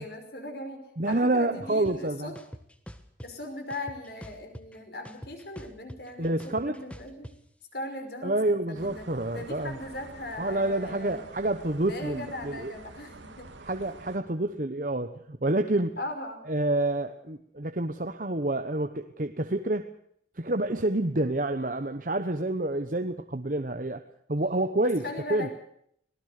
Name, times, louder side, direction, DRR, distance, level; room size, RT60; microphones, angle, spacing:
voice 1, 0.0-2.4 3.2-7.3 7.7-9.1 9.3-11.3 11.9-13.5 13.8-14.0 16.0-16.5 24.8-25.5, left 1 dB, 55° left, 6 dB, 5.3 m, -39 dB
voice 2, 1.0-2.3 6.2-6.7 8.2-9.7 10.4-12.7 13.6-16.0 16.5-19.9 20.4-24.0 24.3-25.0 25.3-25.5, right 2 dB, 45° right, 7 dB, 1.1 m, -28 dB
sound 1, 1.9-2.0 2.4-3.3 3.7-4.8 5.1-7.3, equal, 5° left, 1.5 m, -44 dB
sound 2, 8.7-14.2, right 2 dB, 85° right, 2.5 m, -48 dB
25.5 x 18.5 x 6.7 m, 0.68 s
head